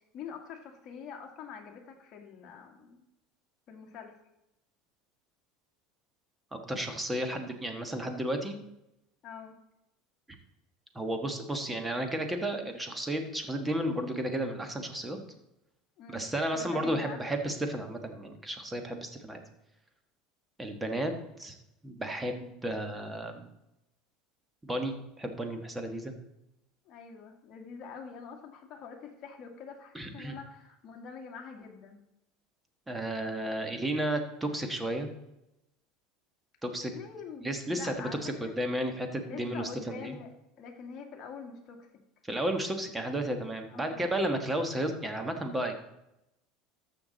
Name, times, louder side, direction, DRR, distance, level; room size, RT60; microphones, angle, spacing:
voice 1, 0.1-3.0 3.7-4.1 9.2-9.5 16.0-17.2 26.8-32.0 36.9-38.5 39.2-41.9 43.7-44.1, left 6 dB, 40° left, 1 dB, 1.8 m, -45 dB
voice 2, 6.5-8.6 10.9-15.2 16.1-19.4 20.6-21.1 21.4-21.6 21.8-23.5 24.6-26.1 29.9-30.4 32.9-35.1 36.6-36.9 37.4-40.2 42.2-45.7, right 1 dB, 10° right, 5 dB, 1.4 m, -33 dB
14.0 x 5.9 x 4.0 m, 0.88 s
supercardioid pair, 130°, 0 cm